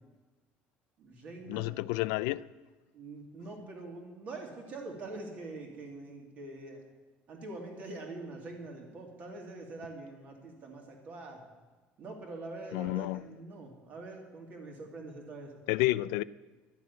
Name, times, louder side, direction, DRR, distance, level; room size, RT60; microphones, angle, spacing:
voice 1, 1.0-1.8 2.9-6.9 7.3-11.4 12.0-15.5, right 2 dB, 35° right, 2.5 m, -44 dB
voice 2, 1.5-2.5 12.7-13.3 15.7-16.2, left 18 dB, 90° left, 0.4 m, -30 dB
12.0 x 7.1 x 9.6 m
cardioid pair, 175°, 5 cm